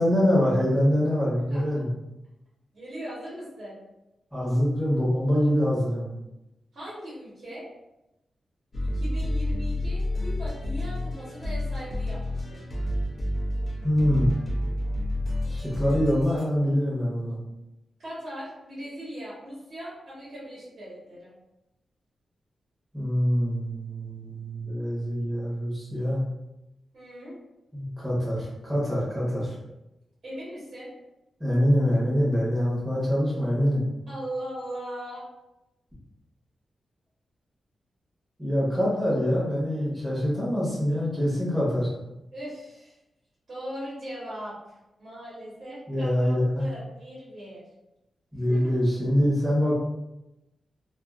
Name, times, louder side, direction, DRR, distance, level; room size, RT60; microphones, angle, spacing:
voice 1, 0.0-1.9 4.3-6.1 13.8-14.3 15.5-17.4 22.9-26.2 27.7-29.5 31.4-33.8 38.4-41.9 45.9-46.7 48.3-49.7, equal, 10° right, -7 dB, 0.9 m, -24 dB
voice 2, 2.7-3.8 6.7-7.7 8.8-12.6 18.0-21.3 26.9-27.3 30.2-30.9 34.1-35.2 42.3-42.9 43.5-44.5 45.0-47.6 48.5-48.9, equal, 50° right, -9 dB, 1.1 m, -39 dB
sound 1, 8.7-16.4, left 1 dB, 35° left, 0.5 m, -29 dB
2.4 x 2.4 x 2.3 m, 0.94 s
wide cardioid pair, 165°, 0 cm